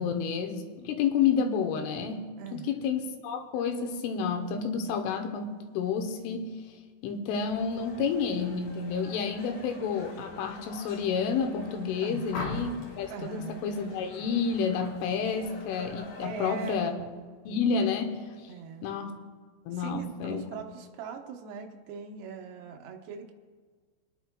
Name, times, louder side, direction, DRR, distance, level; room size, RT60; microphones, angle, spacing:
voice 1, 0.0-6.5 7.0-16.9 17.5-18.2 18.8-19.1 19.7-20.4, left 6 dB, 85° left, 5 dB, 3.4 m, -30 dB
voice 2, 2.4-2.8 12.0-12.4 13.1-13.7 16.2-17.0 18.5-19.0 19.7-23.3, right 6 dB, 75° right, 2 dB, 2.6 m, -41 dB
sound 1, 7.3-16.7, left 2 dB, 45° left, 2.5 m, -48 dB
sound 2, 12.3-12.9 14.7-15.0 15.3-15.7, left 3 dB, 70° left, 3.4 m, -37 dB
26.5 x 10.5 x 2.3 m, 1.5 s
omnidirectional pair, 5.6 m